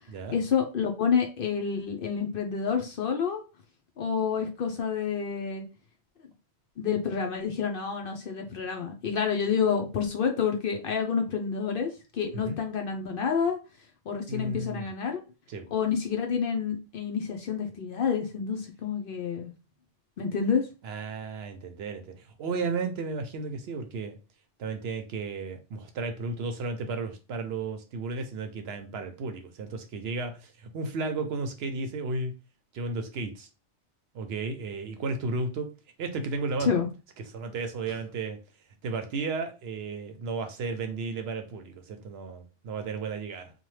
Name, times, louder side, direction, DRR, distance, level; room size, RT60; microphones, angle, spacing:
voice 1, 0.3-3.4 4.0-5.6 6.8-13.6 14.1-15.2 15.7-19.5 20.2-20.6 36.6-36.9, left 6 dB, 60° left, 3 dB, 0.7 m, -28 dB
voice 2, 14.3-14.9 15.5-15.7 20.8-24.2 24.6-32.3 32.7-33.5 34.1-35.7 36.0-36.7 37.3-38.4 38.8-43.5, right 3 dB, 65° right, 7 dB, 0.7 m, -33 dB
2.8 x 2.2 x 3.1 m, 0.31 s
omnidirectional pair, 1.2 m